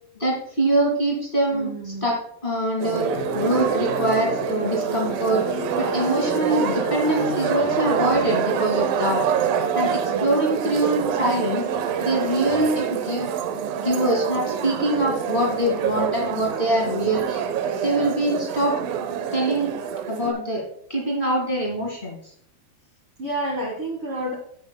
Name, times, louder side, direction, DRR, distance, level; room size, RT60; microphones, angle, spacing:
voice 1, 0.2-3.1 3.3-5.4 5.8-9.2 9.7-11.6 12.0-13.3 13.8-17.4 17.8-18.8 19.3-19.7 20.1-20.6 20.9-22.2, right 1 dB, 55° left, -3 dB, 0.5 m, -24 dB
voice 2, 1.5-2.1 10.0-10.5 23.2-24.3, right 1 dB, 55° right, -3 dB, 1.6 m, -30 dB
sound 1, 2.8-20.3, right 8 dB, 80° right, 2.0 m, -26 dB
sound 2, 3.1-8.4, left 8 dB, 85° left, 2.0 m, -33 dB
16.0 x 6.3 x 2.2 m, 0.66 s
omnidirectional pair, 4.9 m